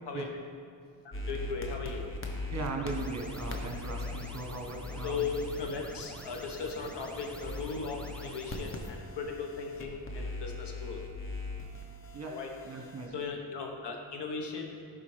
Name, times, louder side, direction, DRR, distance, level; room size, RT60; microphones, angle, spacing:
voice 1, 1.1-2.1 5.0-11.0 12.2-14.8, left 4 dB, 65° left, 2 dB, 1.1 m, -37 dB
sound 1, 1.1-13.1, left 3 dB, 30° left, 1.0 m, -41 dB
sound 2, 2.1-8.9, equal, 5° left, 0.7 m, -47 dB
voice 2, 2.5-5.2 12.1-12.4 12.6-13.3, right 3 dB, 35° right, 2 dB, 1.2 m, -38 dB
10.5 x 4.1 x 3.3 m, 2.3 s
cardioid pair, 65°, 45 cm